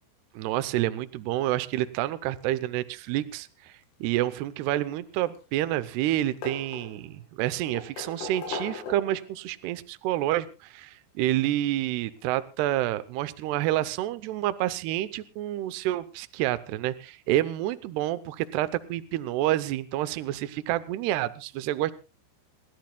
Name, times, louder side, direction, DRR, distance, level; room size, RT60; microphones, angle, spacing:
voice 1, 0.3-3.7 4.0-21.9, right 14 dB, 80° right, 12 dB, 2.4 m, -28 dB
sound 1, 5.1-5.8 6.0-7.2 7.7-9.3 10.5-10.6 12.2-12.3 12.6-12.7, left 3 dB, 85° left, 4.9 m, -38 dB
28.5 x 12.5 x 2.3 m, 0.30 s
omnidirectional pair, 5.6 m